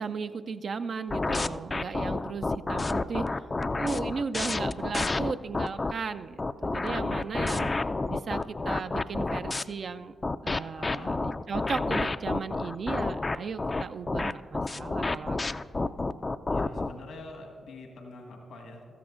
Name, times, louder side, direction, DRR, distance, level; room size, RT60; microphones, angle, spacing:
voice 1, 0.0-3.3 3.8-7.7 8.1-10.1 10.4-15.7, right 5 dB, 60° right, 9 dB, 0.3 m, -36 dB
sound 1, 1.1-5.9 6.4-9.6 10.2-16.9, left 3 dB, 35° left, 0.3 m, -29 dB
voice 2, 10.8-11.1 16.5-18.9, left 2 dB, 75° left, 1 dB, 1.5 m, -45 dB
14.5 x 13.5 x 2.5 m, 2.1 s
supercardioid pair, 40°, 0 cm